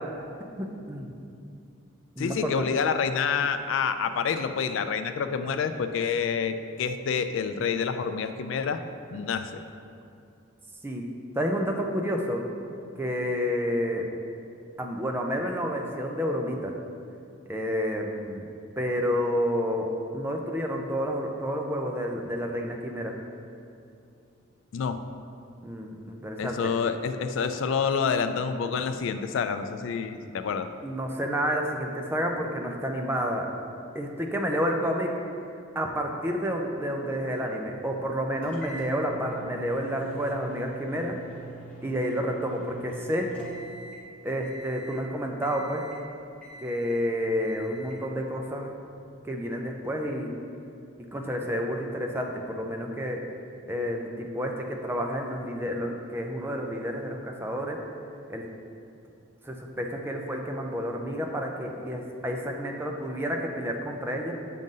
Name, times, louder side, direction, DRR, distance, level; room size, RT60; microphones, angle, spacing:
voice 1, 0.6-1.1 2.2-2.6 10.8-11.1 11.4-12.4 13.0-14.1 14.8-16.7 17.5-18.4 18.8-19.9 20.1-23.1 25.6-26.7 30.8-33.5 33.9-35.1 35.8-41.2 41.8-43.3 44.2-45.9 46.6-48.7 49.2-50.3 51.0-53.2 53.7-57.8 58.3-58.4 59.4-64.3, equal, 10° right, 1 dB, 0.4 m, -30 dB
voice 2, 2.2-8.8 9.1-9.6 24.7-25.0 26.4-30.7, left 6 dB, 65° left, 9 dB, 0.3 m, -28 dB
sound 1, 38.4-44.1 44.4-45.0 45.4-46.1 46.4-47.0 47.4-48.0, right 3 dB, 5° left, 0.9 m, -45 dB
7.5 x 2.6 x 5.4 m, 2.5 s
head